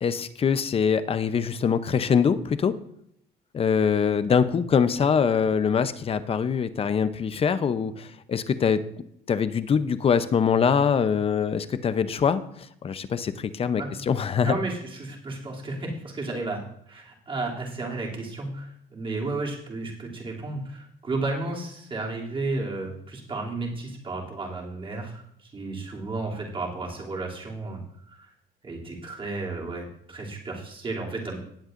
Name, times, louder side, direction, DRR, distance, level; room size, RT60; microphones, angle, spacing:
voice 1, 0.0-2.7 3.5-8.8 9.3-14.5, left 6 dB, 35° left, 12 dB, 0.7 m, -23 dB
voice 2, 14.4-27.8 28.1-28.3 28.6-31.4, right 3 dB, 30° right, -3 dB, 2.9 m, -33 dB
17.5 x 8.0 x 2.6 m, 0.71 s
cardioid pair, 110°, 17 cm